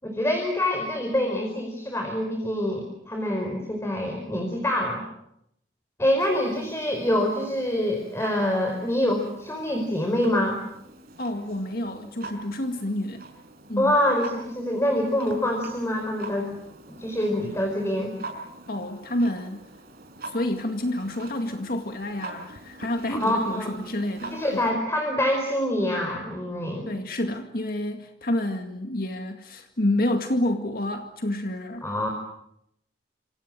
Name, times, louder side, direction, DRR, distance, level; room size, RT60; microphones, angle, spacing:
voice 1, 0.0-5.0 6.0-10.6 13.8-16.5 16.9-18.1 23.1-23.7 24.3-26.9 31.8-32.1, left 1 dB, 15° left, 2 dB, 4.7 m, -25 dB
Clock, 6.2-24.7, right 3 dB, 60° right, 5.8 m, -44 dB
voice 2, 11.2-13.3 13.7-14.0 18.7-19.7 20.2-24.7 26.9-31.9, left 1 dB, 55° left, 5 dB, 2.1 m, -29 dB
28.0 x 27.0 x 7.6 m, 0.78 s
head